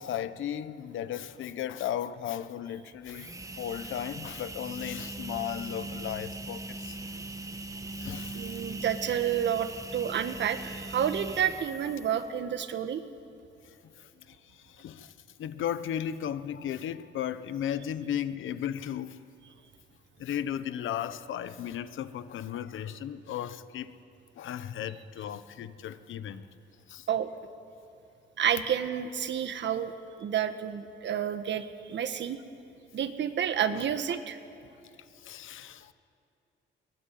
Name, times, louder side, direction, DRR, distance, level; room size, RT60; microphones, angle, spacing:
voice 1, 0.0-7.0 8.0-8.6 14.3-14.4 14.6-15.1 15.4-19.2 20.2-23.9 24.4-26.4 26.9-27.0 32.0-32.2 33.6-33.8 34.8-34.9 35.2-35.9, left 10 dB, 80° left, 1.1 m, -35 dB
sound 1, 2.9-12.4, right 2 dB, 15° right, 1.3 m, -40 dB
voice 2, 8.3-13.0 27.1-27.3 28.4-29.9 30.2-32.4 32.9-34.4, right 9 dB, 65° right, 1.5 m, -30 dB
22.0 x 19.0 x 9.4 m
cardioid pair, 110°, 20 cm